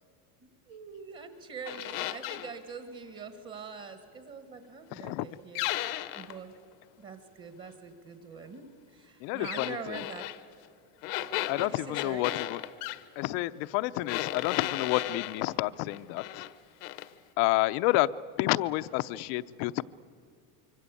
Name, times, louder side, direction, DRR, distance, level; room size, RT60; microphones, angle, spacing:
voice 1, 0.4-5.7 6.1-6.6 7.0-10.3 11.6-12.3, right 5 dB, 30° right, 9 dB, 1.7 m, -44 dB
Squeaky floor, 1.7-2.5 5.6-6.4 9.4-10.4 11.0-13.0 14.1-15.4 15.9-16.5 16.8-17.1, left 15 dB, 85° left, 1.2 m, -35 dB
voice 2, 4.9-5.3 9.2-10.0 11.5-12.6 13.2-16.4 17.4-18.1 18.4-19.8, left 18 dB, 50° left, 14 dB, 0.7 m, -29 dB
25.0 x 24.5 x 8.4 m, 2.4 s
supercardioid pair, 155°, 45 cm